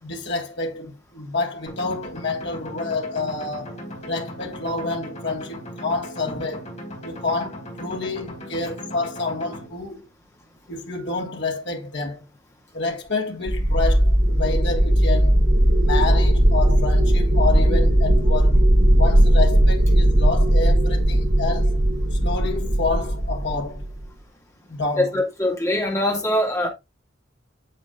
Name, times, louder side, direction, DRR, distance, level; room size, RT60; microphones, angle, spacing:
voice 1, 0.0-6.7 7.0-10.0 10.7-12.3 12.7-15.4 15.8-18.6 19.0-21.8 22.1-23.9 24.7-25.2, left 3 dB, 60° left, 1.6 m, -28 dB
sound 1, 1.7-9.7, equal, 35° left, 3.8 m, -38 dB
sound 2, 13.5-24.1, right 1 dB, 70° right, 3.7 m, -18 dB
voice 2, 25.0-26.7, left 1 dB, 15° left, 2.0 m, -22 dB
8.4 x 7.1 x 2.4 m
head